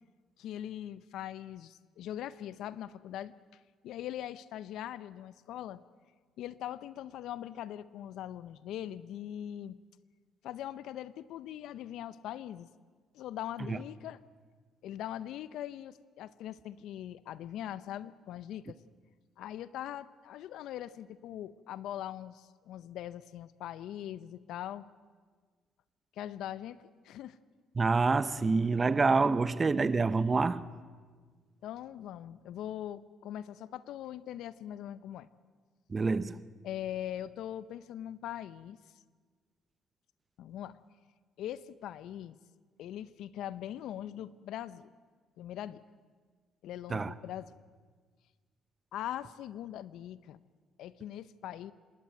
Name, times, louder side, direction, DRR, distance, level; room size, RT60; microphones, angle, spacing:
voice 1, 0.4-3.3 3.8-5.8 6.4-9.8 10.4-12.7 13.1-14.2 14.8-18.8 19.4-24.9 26.2-26.8 27.0-27.4 31.6-35.3 36.6-38.8 40.4-40.8 41.4-42.4 42.8-44.9 45.4-45.8 46.6-47.5 48.9-50.4 50.8-51.7, left 11 dB, 75° left, 0.6 m, -41 dB
voice 2, 27.8-30.6 35.9-36.4 46.9-47.1, right 4 dB, 30° right, 0.8 m, -27 dB
26.5 x 11.5 x 9.2 m
supercardioid pair, 75°, 0 cm